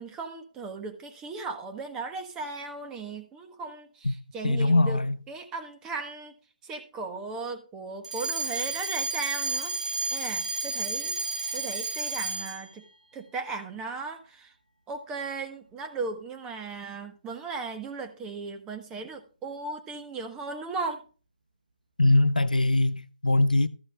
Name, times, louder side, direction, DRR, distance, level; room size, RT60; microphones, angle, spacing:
voice 1, 0.0-6.3 6.6-11.2 11.5-12.8 13.1-14.5 14.9-21.0, right 4 dB, 15° right, 1.3 m, -37 dB
voice 2, 4.4-5.2 22.0-23.7, left 2 dB, 80° left, 0.7 m, -22 dB
Alarm, 8.0-12.7, right 3 dB, 65° right, 1.5 m, -31 dB
13.5 x 4.8 x 5.1 m
figure-of-eight pair, 140°, 4 cm